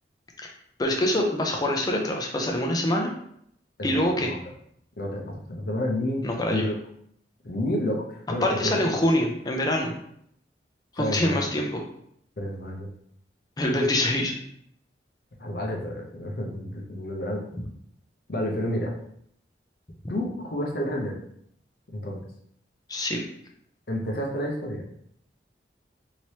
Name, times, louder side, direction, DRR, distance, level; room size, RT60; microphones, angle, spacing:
voice 1, 0.8-3.1 3.8-4.3 6.2-6.7 8.4-9.9 10.9-11.8 13.6-14.3 22.9-23.2, left 1 dB, 20° left, 1 dB, 0.5 m, -25 dB
voice 2, 3.9-4.4 5.0-6.7 7.4-9.0 11.0-11.5 12.4-12.9 15.4-17.4 18.3-18.9 20.1-21.1 21.9-22.2 23.9-24.9, left 1 dB, 55° left, 0 dB, 0.7 m, -30 dB
3.1 x 2.9 x 2.9 m, 0.69 s
head